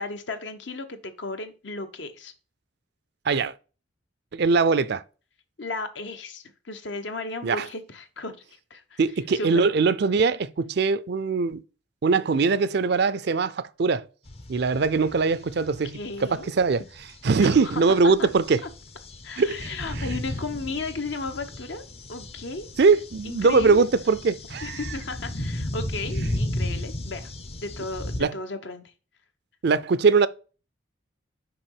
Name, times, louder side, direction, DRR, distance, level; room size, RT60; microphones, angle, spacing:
voice 1, 0.0-2.3 5.6-8.4 8.7-9.0 9.3-9.6 15.9-16.5 17.4-18.3 19.2-21.8 22.1-22.7 23.2-23.9 24.6-27.3 27.6-28.8, left 3 dB, 70° left, 1.0 m, -34 dB
voice 2, 4.3-5.0 7.4-7.7 9.0-11.6 12.0-14.0 14.5-16.8 17.2-18.6 19.4-20.1 22.8-24.8 28.2-28.3 29.6-30.3, right 4 dB, 60° right, 0.5 m, -22 dB
sound 1, 14.3-28.2, left 1 dB, 35° left, 0.6 m, -35 dB
6.0 x 4.9 x 4.7 m
head